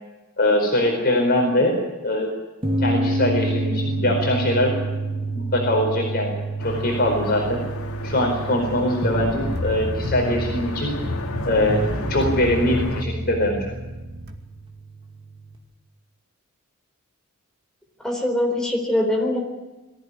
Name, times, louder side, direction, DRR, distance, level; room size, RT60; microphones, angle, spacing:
voice 1, 0.4-2.3 2.8-4.8 5.3-6.4 6.6-7.6 8.0-11.0 11.4-11.8 12.1-13.6, left 1 dB, 45° left, 0 dB, 4.6 m, -22 dB
sound 1, 2.6-15.5, right 2 dB, 25° right, 2.3 m, -30 dB
sound 2, 6.6-13.0, left 2 dB, 90° left, 2.3 m, -33 dB
sound 3, 9.0-14.3, equal, 50° right, 2.3 m, -29 dB
voice 2, 18.0-19.4, left 1 dB, 5° left, 1 dB, 4.1 m, -22 dB
22.5 x 16.0 x 9.8 m, 1.1 s
head